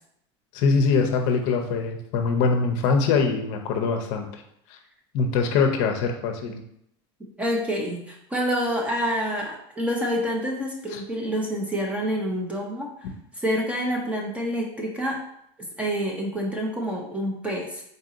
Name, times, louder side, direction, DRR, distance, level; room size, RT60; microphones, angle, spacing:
voice 1, 0.5-4.3 5.1-6.6, left 4 dB, 55° left, 3 dB, 0.6 m, -23 dB
voice 2, 7.4-12.9 13.4-15.2 15.8-17.8, equal, 10° right, 0 dB, 0.6 m, -27 dB
4.0 x 2.7 x 3.8 m, 0.75 s
supercardioid pair, 150°, 15 cm